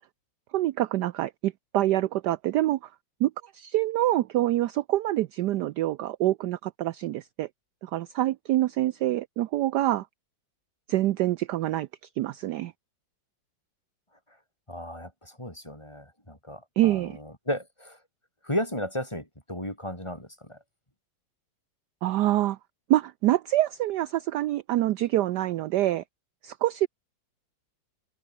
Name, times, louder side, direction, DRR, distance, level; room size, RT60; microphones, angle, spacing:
voice 1, 0.5-2.9 3.2-7.5 7.8-10.1 10.9-11.9 12.2-12.7 16.8-17.2 22.0-22.6 22.9-26.0 26.4-26.9, right 14 dB, 70° right, 1.1 m, -26 dB
voice 2, 14.7-18.0 18.4-20.6, left 1 dB, 15° left, 6.4 m, -34 dB
omnidirectional pair, 2.1 m